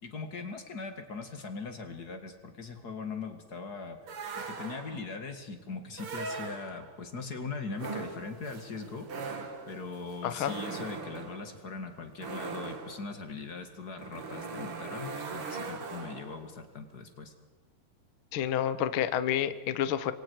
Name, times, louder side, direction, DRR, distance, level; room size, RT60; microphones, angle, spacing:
voice 1, 0.0-4.0 4.4-9.1 9.7-17.3, left 4 dB, 35° left, 6 dB, 1.9 m, -40 dB
sound 1, 4.1-5.1 5.9-7.0 7.7-16.5, right 4 dB, 45° right, 2.6 m, -40 dB
voice 2, 10.2-10.5 18.3-20.1, left 10 dB, 80° left, 12 dB, 1.1 m, -29 dB
27.5 x 24.5 x 4.8 m, 1.2 s
omnidirectional pair, 4.1 m